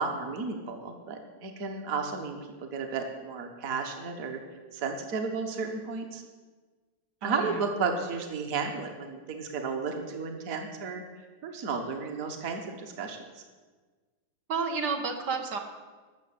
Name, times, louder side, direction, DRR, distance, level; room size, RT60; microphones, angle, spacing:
voice 1, 0.0-4.4 4.7-6.2 7.2-11.0 11.4-13.4, right 4 dB, 55° right, 4 dB, 1.7 m, -33 dB
voice 2, 7.2-7.7 14.5-15.6, right 5 dB, 80° right, 3 dB, 1.9 m, -31 dB
13.5 x 6.4 x 8.6 m, 1.4 s
omnidirectional pair, 1.8 m